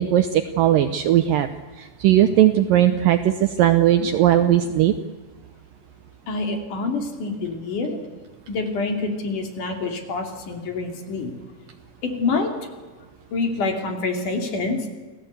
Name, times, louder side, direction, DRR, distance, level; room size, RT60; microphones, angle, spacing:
voice 1, 0.0-1.5 1.8-4.9, right 12 dB, 75° right, 9 dB, 2.1 m, -18 dB
voice 2, 6.3-8.0 8.5-11.3 12.0-12.7 13.3-14.9, left 3 dB, 50° left, 3 dB, 4.1 m, -26 dB
28.0 x 17.0 x 8.2 m, 1.3 s
omnidirectional pair, 4.8 m